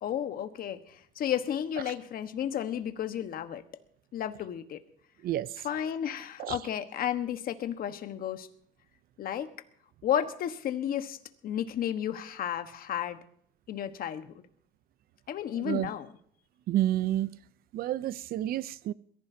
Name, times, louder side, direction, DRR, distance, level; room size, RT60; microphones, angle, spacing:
voice 1, 0.0-3.6 4.1-4.8 5.6-8.5 9.2-9.5 10.0-11.2 11.4-13.2 13.7-14.4 15.3-16.1, left 10 dB, 60° left, 1.3 m, -32 dB
voice 2, 15.6-15.9 16.7-17.3 17.7-18.9, right 13 dB, 60° right, 0.5 m, -29 dB
22.5 x 15.0 x 2.8 m
cardioid pair, 110°, 17 cm